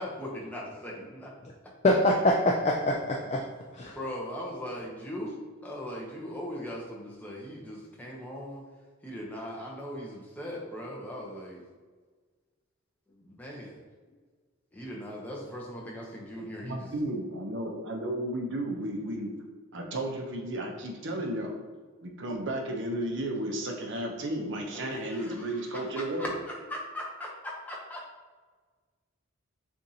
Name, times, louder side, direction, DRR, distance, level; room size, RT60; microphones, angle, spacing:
voice 1, 0.0-1.3 1.6-1.7 3.9-8.6 9.0-11.6 13.2-13.8 14.7-16.9 24.7-28.0, equal, 10° left, -3 dB, 0.7 m, -39 dB
voice 2, 1.8-3.4 3.7-3.9, left 1 dB, 30° left, 0 dB, 0.3 m, -24 dB
voice 3, 16.4-19.3 19.7-21.6 22.0-26.3, right 1 dB, 55° right, 2 dB, 0.7 m, -33 dB
6.9 x 2.5 x 2.8 m, 1.4 s
head